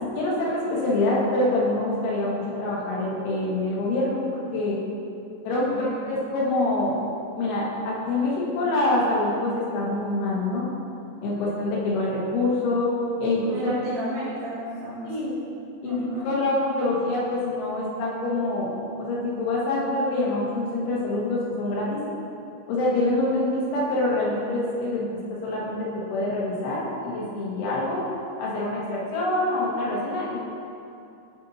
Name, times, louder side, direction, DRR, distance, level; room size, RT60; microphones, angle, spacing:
voice 1, 0.1-4.8 5.5-6.9 7.4-10.7 11.2-12.9 13.2-13.7 15.1-15.3 15.8-16.0 16.2-18.7 19.0-22.0 22.7-28.1 28.4-30.4, left 2 dB, 85° left, -5 dB, 3.9 m, -25 dB
voice 2, 5.5-5.9 13.5-15.1 15.8-16.4, right 1 dB, 65° right, -7 dB, 2.6 m, -33 dB
11.5 x 4.1 x 4.2 m, 2.6 s
omnidirectional pair, 5.2 m